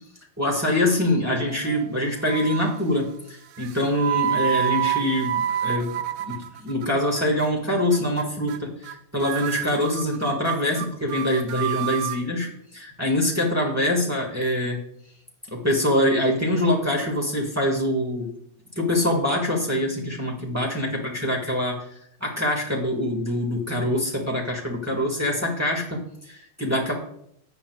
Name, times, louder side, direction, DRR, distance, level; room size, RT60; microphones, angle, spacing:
voice 1, 0.4-3.1 3.6-5.9 6.3-14.8 15.5-18.3 18.8-21.8 22.2-26.9, left 1 dB, 15° right, -1 dB, 1.7 m, -24 dB
sound 1, 1.3-1.9 2.3-2.8 3.6-6.9 7.2-7.5 7.9-8.2 8.5-8.9 9.2-12.2, right 11 dB, 80° right, 0.9 m, -28 dB
14.0 x 9.3 x 2.4 m, 0.71 s
omnidirectional pair, 1.3 m